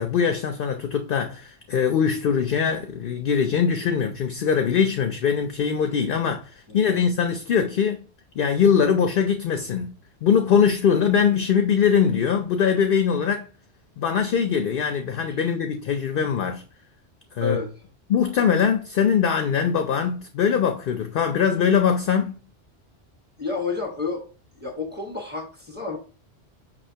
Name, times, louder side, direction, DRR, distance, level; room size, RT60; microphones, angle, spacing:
voice 1, 0.0-8.0 8.4-9.9 10.2-13.5 14.0-16.6 17.4-17.6 18.1-22.3, left 7 dB, 60° left, 0.6 m, -22 dB
voice 2, 6.7-7.1 17.4-17.7 23.4-24.3 24.5-26.0, left 4 dB, 10° right, 1.2 m, -30 dB
5.5 x 3.3 x 2.7 m
omnidirectional pair, 1.2 m